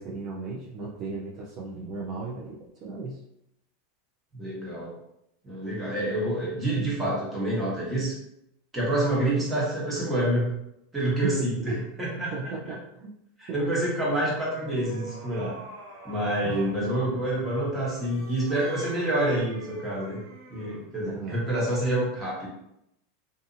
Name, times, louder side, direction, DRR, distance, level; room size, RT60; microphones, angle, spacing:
voice 1, 0.0-3.2 11.2-11.8 12.3-13.2 13.5-13.6 16.4-16.6 21.0-21.4, right 3 dB, 45° right, -4 dB, 0.5 m, -36 dB
voice 2, 4.3-5.0 5.4-8.2 8.7-10.5 10.9-11.6 12.0-12.3 13.4-15.6 16.0-20.2 20.5-22.5, right 1 dB, 15° right, -6 dB, 1.2 m, -27 dB
sound 1, 13.8-16.8 17.7-20.9, right 1 dB, 70° right, 1.4 m, -45 dB
2.7 x 2.6 x 2.5 m, 0.80 s
supercardioid pair, 120°, 0 cm